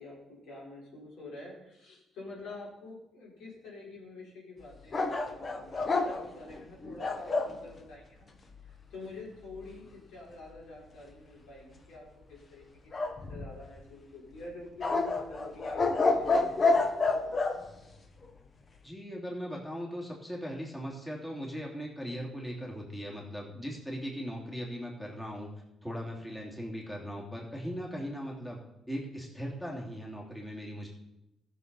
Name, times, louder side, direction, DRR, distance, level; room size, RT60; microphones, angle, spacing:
voice 1, 0.0-8.3 8.6-12.6 13.0-16.5, left 2 dB, 85° left, -4 dB, 4.7 m, -47 dB
sound 1, 4.9-7.6 12.9-13.8 14.8-17.6, left 3 dB, 35° left, 1.3 m, -28 dB
voice 2, 18.8-25.5 25.8-28.6 28.9-30.9, equal, 10° left, -2 dB, 3.0 m, -39 dB
14.0 x 6.9 x 5.6 m, 0.91 s
cardioid pair, 90°, 0 cm